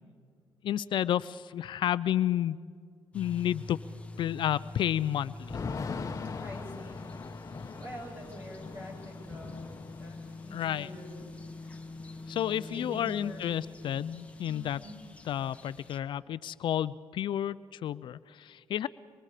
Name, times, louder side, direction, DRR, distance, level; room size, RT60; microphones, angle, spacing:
voice 1, 0.6-2.6 3.1-3.8 4.2-5.6 10.5-10.9 12.3-14.8 15.2-18.9, left 11 dB, 65° left, 16 dB, 0.4 m, -31 dB
sound 1, 3.1-16.0, left 2 dB, 15° left, 1.3 m, -45 dB
Thunder / Rain, 5.5-13.3 13.6-13.7 14.0-15.3, left 5 dB, 40° left, 1.1 m, -42 dB
voice 2, 6.4-7.0 7.8-9.7 10.0-11.2 12.6-13.4 14.5-14.9, equal, 25° right, 0 dB, 7.7 m, -45 dB
24.5 x 24.5 x 5.0 m, 2.2 s
cardioid pair, 95°, 9 cm